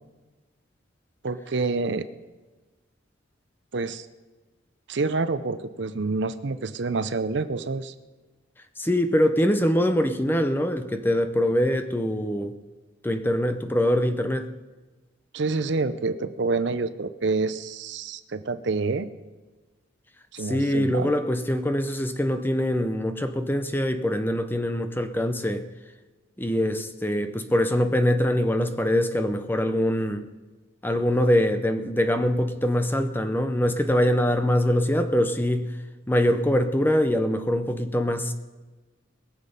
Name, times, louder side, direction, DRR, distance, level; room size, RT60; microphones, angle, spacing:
voice 1, 1.2-2.1 3.7-4.1 4.9-7.9 15.3-19.1 20.3-21.1, right 3 dB, 60° right, 13 dB, 0.6 m, -27 dB
voice 2, 8.8-12.5 13.0-14.5 20.4-25.6 26.4-30.3 30.8-35.7 36.1-38.3, equal, 10° left, 8 dB, 0.6 m, -23 dB
21.5 x 7.4 x 5.5 m, 1.3 s
head